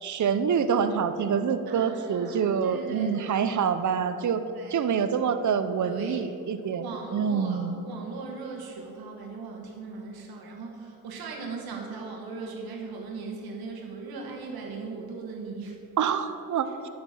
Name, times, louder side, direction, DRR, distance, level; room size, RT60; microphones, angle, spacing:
voice 1, 0.0-4.4 4.7-7.8 16.0-16.7, right 7 dB, 55° right, 10 dB, 0.7 m, -26 dB
voice 2, 1.7-3.5 3.9-4.0 4.5-4.9 5.8-6.2 6.8-15.8, right 4 dB, 90° right, 1 dB, 1.5 m, -38 dB
11.0 x 4.4 x 7.6 m, 2.8 s
supercardioid pair, 45°, 36 cm